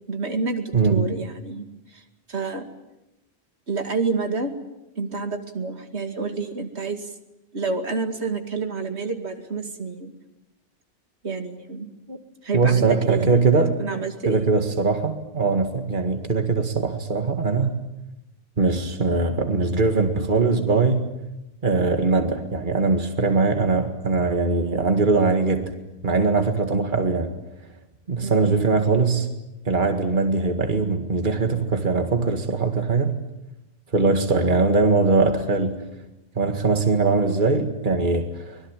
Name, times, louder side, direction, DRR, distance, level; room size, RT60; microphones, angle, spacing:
voice 1, 0.1-1.7 1.9-2.0 2.3-2.6 3.7-4.5 5.0-7.1 7.5-10.1 11.2-11.9 12.4-13.4 13.8-14.5 28.2-28.4, right 4 dB, 85° right, 5 dB, 2.5 m, -28 dB
voice 2, 0.7-1.1 12.1-12.2 12.5-13.8 14.3-17.8 18.6-21.1 21.6-25.7 26.0-27.3 28.1-29.3 29.7-33.2 33.9-35.8 36.4-38.6, right 4 dB, 50° right, 6 dB, 2.1 m, -21 dB
25.0 x 21.0 x 9.1 m, 0.93 s
omnidirectional pair, 1.1 m